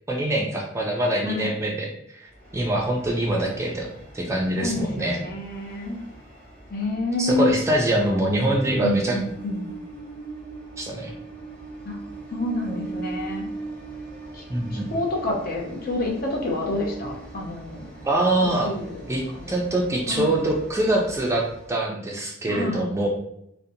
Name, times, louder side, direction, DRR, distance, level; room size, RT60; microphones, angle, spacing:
voice 1, 0.1-1.9 2.2-5.2 7.2-9.2 10.8-11.1 14.5-14.9 18.0-18.7 19.1-23.1, right 1 dB, 15° right, 0 dB, 0.3 m, -24 dB
voice 2, 1.2-1.5 4.6-6.0 6.7-7.5 8.8-9.7 11.8-12.0 12.3-13.5 14.3-14.4 14.7-17.9 18.4-19.0 19.3-19.6 20.1-20.4 22.5-22.9, left 2 dB, 50° left, 0 dB, 0.6 m, -28 dB
Train, 2.3-21.8, right 3 dB, 5° left, 0.9 m, -41 dB
2.5 x 2.1 x 2.6 m, 0.76 s
head